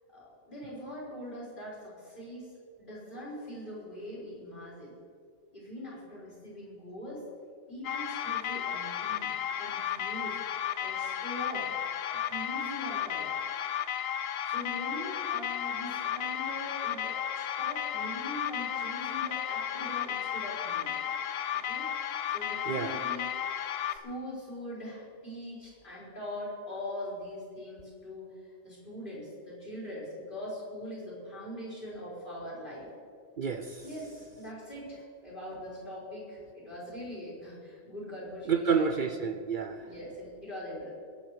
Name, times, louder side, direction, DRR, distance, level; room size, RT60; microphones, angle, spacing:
voice 1, 0.1-2.5 2.8-4.9 5.5-7.2 7.7-9.3 9.6-10.4 10.8-11.7 12.1-13.3 14.4-21.0 21.5-21.9 22.3-23.3 23.9-28.3 28.6-32.9 33.8-39.0 39.8-40.9, left 1 dB, 50° left, -7 dB, 4.9 m, -42 dB
sound 1, 7.8-24.0, left 9 dB, 70° left, 0.9 m, -33 dB
voice 2, 22.7-23.0 33.4-33.8 38.5-39.9, right 6 dB, 55° right, 8 dB, 0.7 m, -29 dB
21.5 x 8.5 x 4.9 m, 2.2 s
omnidirectional pair, 1.1 m